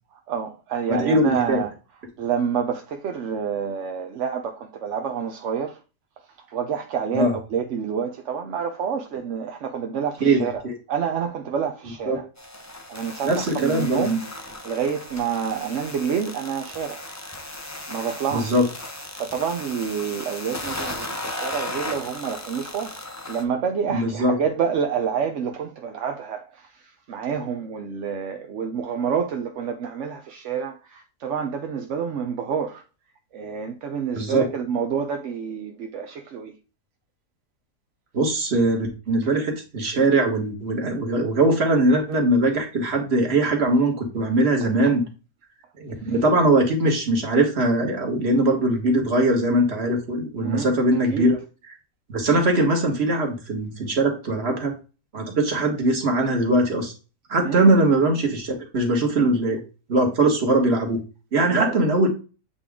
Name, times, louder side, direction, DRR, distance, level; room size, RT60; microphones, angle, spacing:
voice 1, 0.3-1.7 2.2-5.8 6.5-10.6 10.9-12.2 12.9-17.1 17.9-18.6 19.1-22.9 23.3-32.8 33.3-36.5 46.0-46.1 50.4-50.7 51.1-51.3 57.4-57.7 61.5-61.7, right 7 dB, 60° right, 0.8 m, -28 dB
voice 2, 0.9-1.6 7.1-7.4 10.2-10.8 12.1-12.2 13.2-14.1 18.3-18.6 23.9-24.3 34.1-34.4 38.1-45.0 45.8-51.4 52.1-54.7 55.1-56.9 57.3-59.6 59.9-61.0 61.3-62.1, right 2 dB, 40° right, 1.7 m, -21 dB
sound 1, 12.4-23.4, left 1 dB, 20° left, 0.5 m, -36 dB
8.3 x 3.5 x 3.6 m
omnidirectional pair, 1.7 m